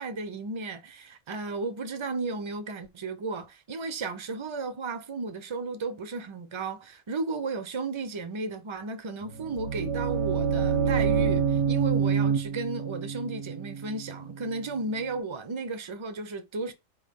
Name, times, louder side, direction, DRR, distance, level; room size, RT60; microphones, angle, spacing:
voice 1, 0.0-16.7, right 3 dB, 30° right, 0.5 m, -34 dB
sound 1, 9.3-15.1, right 6 dB, 75° right, 1.1 m, -27 dB
4.5 x 3.2 x 3.6 m
omnidirectional pair, 1.4 m